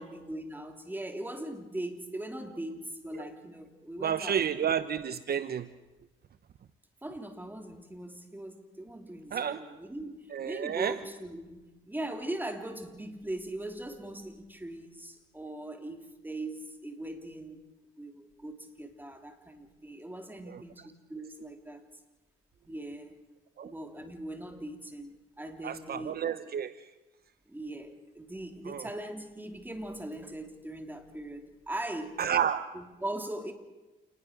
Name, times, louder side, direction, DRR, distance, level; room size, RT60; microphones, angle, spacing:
voice 1, 0.0-4.6 7.0-17.6 18.0-21.8 22.7-23.2 23.6-26.1 27.5-32.2 32.7-33.5, right 1 dB, 10° right, 5 dB, 3.6 m, -40 dB
voice 2, 4.0-5.7 9.3-9.6 10.3-11.0 20.5-20.6 23.6-23.7 25.6-26.9 28.7-28.9 32.2-32.7, right 8 dB, 50° right, 12 dB, 1.0 m, -31 dB
28.5 x 20.0 x 6.7 m, 1.1 s
cardioid pair, 90°, 20 cm